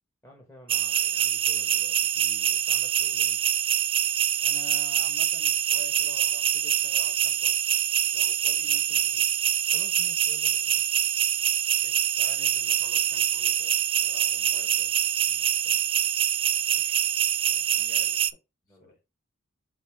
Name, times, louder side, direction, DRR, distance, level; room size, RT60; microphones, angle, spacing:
voice 1, 0.2-3.4 9.7-10.8 15.3-15.8 17.5-17.6 18.7-18.9, left 1 dB, 15° left, 1.6 m, -52 dB
sound 1, 0.7-18.3, right 10 dB, 30° right, 0.3 m, -25 dB
voice 2, 4.4-7.6 8.1-9.3 11.8-14.9 16.7-17.0 17.7-18.2 18.7-19.0, left 3 dB, 45° left, 3.4 m, -49 dB
6.4 x 4.0 x 3.7 m
head